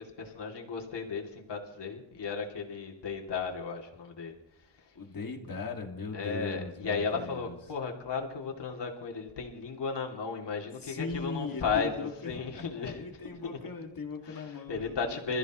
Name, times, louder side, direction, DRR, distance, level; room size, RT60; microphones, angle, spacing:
voice 1, 0.0-4.9 6.1-13.0 13.2-13.6 14.2-15.4, left 5 dB, 65° left, 0 dB, 2.9 m, -35 dB
voice 2, 4.9-7.5 10.8-11.7 12.2-15.2, left 4 dB, 50° left, 3 dB, 2.3 m, -39 dB
27.0 x 14.5 x 3.1 m, 0.86 s
wide cardioid pair, 140°, 45 cm